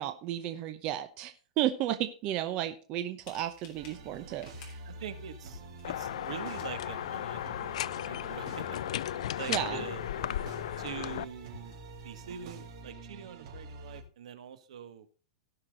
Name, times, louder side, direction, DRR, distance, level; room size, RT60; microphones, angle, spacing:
voice 1, 0.0-4.8 9.5-9.8, right 12 dB, 25° right, 8 dB, 0.8 m, -33 dB
sound 1, 3.2-12.8, equal, 25° left, 3.5 m, -59 dB
sound 2, 3.7-14.0, right 2 dB, 45° right, 3.8 m, -47 dB
voice 2, 4.9-8.8 9.4-10.0 10.8-11.8 12.0-15.1, right 8 dB, 65° right, 11 dB, 1.9 m, -44 dB
Hotel Door Opening, 5.8-11.2, left 12 dB, 65° left, 0.4 m, -35 dB
17.0 x 6.0 x 3.9 m, 0.37 s
supercardioid pair, 170°, 4 cm